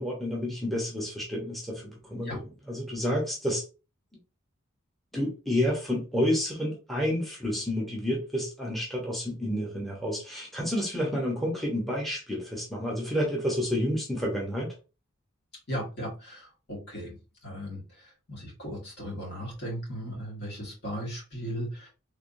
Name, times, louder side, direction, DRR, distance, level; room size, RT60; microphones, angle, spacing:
voice 1, 0.0-3.6 5.1-14.7, equal, ahead, 0.8 m, -30 dB
voice 2, 15.7-21.9, equal, 55° left, 2.0 m, -37 dB
3.5 x 3.3 x 2.6 m
head